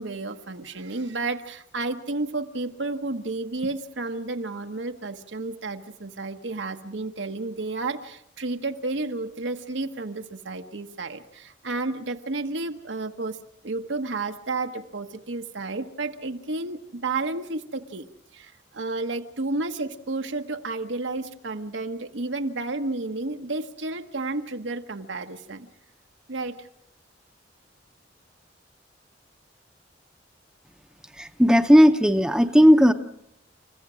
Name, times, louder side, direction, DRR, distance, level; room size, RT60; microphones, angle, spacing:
voice 1, 0.0-13.4 13.6-18.1 18.3-25.7 26.3-26.7, right 3 dB, 85° right, 6 dB, 1.2 m, -31 dB
voice 2, 31.2-32.9, equal, 5° right, 7 dB, 0.7 m, -16 dB
29.5 x 15.0 x 6.2 m, 0.78 s
head